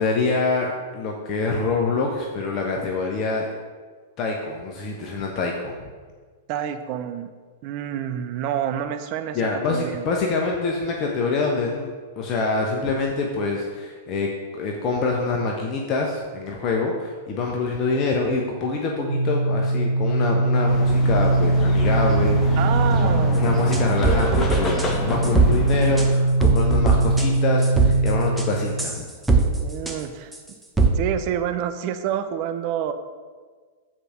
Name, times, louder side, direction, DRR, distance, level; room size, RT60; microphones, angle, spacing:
voice 1, 0.0-3.5 4.2-5.7 9.3-14.3 14.5-22.6 23.0-29.1, left 3 dB, 35° left, 0 dB, 1.1 m, -25 dB
voice 2, 6.5-7.3 7.6-10.1 22.6-23.5 29.6-30.3 30.9-32.9, right 9 dB, 45° right, 9 dB, 0.5 m, -28 dB
sound 1, 19.1-28.9, right 2 dB, 80° right, 0.7 m, -21 dB
sound 2, 20.7-26.1, left 1 dB, 20° left, 1.4 m, -28 dB
sound 3, 23.7-24.9 25.2-25.5 26.0-26.1 26.4-27.3 27.6-28.1 28.4-28.5 28.8-29.6 29.9-30.0 30.3-30.4 30.8-30.9, right 4 dB, 5° right, 1.0 m, -20 dB
8.8 x 5.0 x 6.1 m, 1.5 s
figure-of-eight pair, 100°, 0 cm